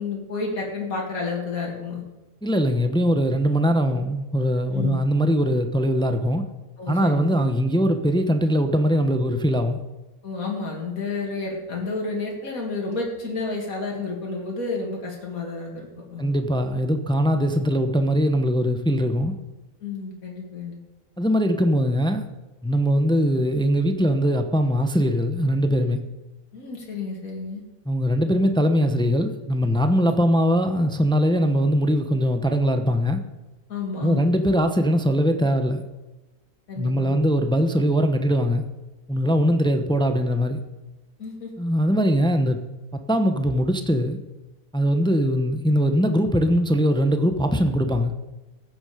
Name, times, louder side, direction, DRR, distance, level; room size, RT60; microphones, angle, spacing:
voice 1, 0.0-2.0 4.7-5.1 6.8-7.3 10.2-16.3 19.8-20.8 26.5-27.6 30.0-30.1 33.7-34.4 36.7-37.1 41.2-41.5, left 3 dB, 80° left, -1 dB, 2.6 m, -31 dB
voice 2, 2.4-6.4 6.9-9.8 16.2-19.3 21.2-22.2 22.6-26.0 27.9-33.2 34.0-35.8 36.8-38.6 39.1-40.6 41.6-42.6 43.1-44.2 44.7-48.1, equal, 5° left, 7 dB, 0.6 m, -21 dB
15.0 x 9.7 x 5.0 m, 1.1 s
omnidirectional pair, 1.5 m